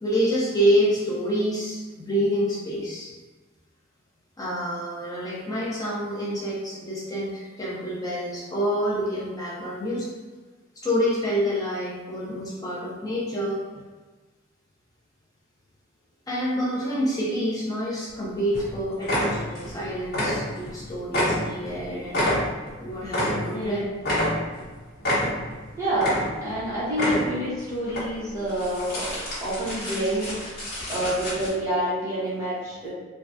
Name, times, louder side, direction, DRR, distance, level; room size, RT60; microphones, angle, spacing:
voice 1, 0.0-3.1 4.4-10.1 10.8-13.6 16.3-22.3 22.8-23.8, equal, 20° left, -6 dB, 0.5 m, -27 dB
sound 1, 18.1-18.2 18.5-18.7 19.0-19.8 20.0-20.8 21.1-23.7 24.0-24.7 25.0-25.6 25.9-26.6 26.9-27.5 27.9-28.0 28.5-31.5, left 1 dB, 50° left, 1.1 m, -27 dB
voice 2, 25.8-30.4 30.9-32.9, right 1 dB, 15° right, -10 dB, 0.9 m, -28 dB
3.1 x 2.3 x 2.6 m, 1.4 s
head